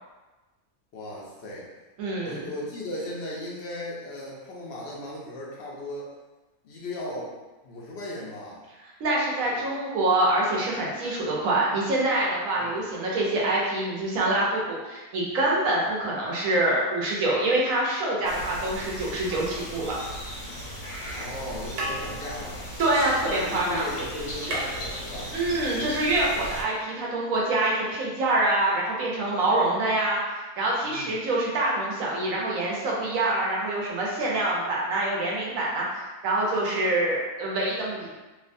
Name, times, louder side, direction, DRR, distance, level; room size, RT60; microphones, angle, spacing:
voice 1, 0.9-1.7 2.2-6.1 6.6-7.3 7.6-8.6 9.5-9.6 12.6-12.7 21.1-22.7 23.3-25.3 25.7-25.9 30.8-31.2, left 1 dB, 65° left, -4 dB, 0.7 m, -37 dB
voice 2, 2.0-2.5 9.0-19.9 22.8-23.9 25.3-38.1, right 2 dB, 65° right, -4 dB, 1.0 m, -25 dB
sound 1, 18.2-26.6, equal, 80° left, 1.5 m, -37 dB
sound 2, 19.3-20.4 21.3-21.5 21.7-23.6 23.9-24.0 24.2-25.6 26.8-26.9, right 1 dB, 85° right, 1.2 m, -36 dB
3.1 x 2.2 x 2.5 m, 1.1 s
omnidirectional pair, 1.6 m